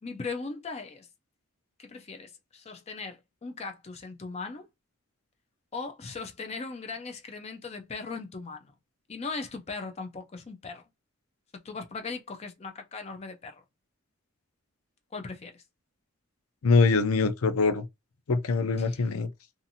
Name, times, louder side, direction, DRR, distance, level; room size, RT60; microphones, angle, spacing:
voice 1, 0.0-1.1 1.8-4.7 5.7-8.7 9.1-10.8 11.5-13.6 15.1-15.6 18.8-19.0, left 4 dB, 30° left, 0.4 m, -39 dB
voice 2, 16.6-17.8 18.3-19.3, left 4 dB, 85° left, 0.5 m, -23 dB
2.6 x 2.5 x 2.7 m
head